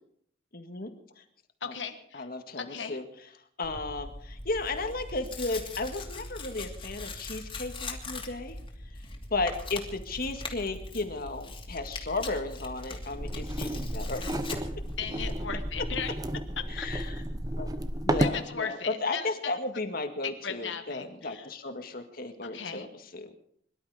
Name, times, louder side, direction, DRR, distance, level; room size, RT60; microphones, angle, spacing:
voice 1, 0.5-1.2 1.6-1.7 2.1-3.0 3.6-8.6 9.3-14.2 16.7-17.2 17.6-17.7 18.1-23.4, left 3 dB, 55° left, 6 dB, 1.9 m, -34 dB
voice 2, 1.6-2.3 2.6-3.0 15.0-16.1 16.8-16.9 18.2-19.6 20.2-21.5 22.4-22.9, left 6 dB, 80° left, 7 dB, 1.4 m, -37 dB
Tearing, 3.6-16.0, left 2 dB, 30° left, 2.7 m, -41 dB
sound 1, 13.1-18.4, right 1 dB, 20° right, 1.0 m, -32 dB
23.0 x 12.0 x 5.0 m, 0.66 s
head